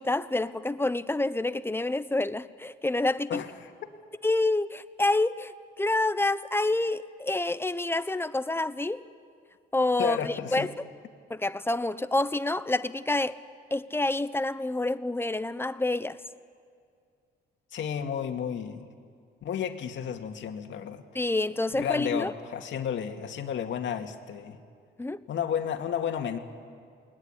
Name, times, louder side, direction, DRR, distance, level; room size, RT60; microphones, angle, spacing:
voice 1, 0.0-3.4 4.2-9.0 9.7-10.7 11.3-13.3 13.7-16.2 21.1-22.3 25.0-25.2, left 2 dB, 10° left, 0.9 m, -28 dB
voice 2, 3.3-3.7 10.0-10.7 17.7-18.9 19.4-21.0 21.7-24.6 25.3-26.4, left 8 dB, 70° left, 2.2 m, -32 dB
28.0 x 20.5 x 10.0 m
cardioid pair, 90°, 20 cm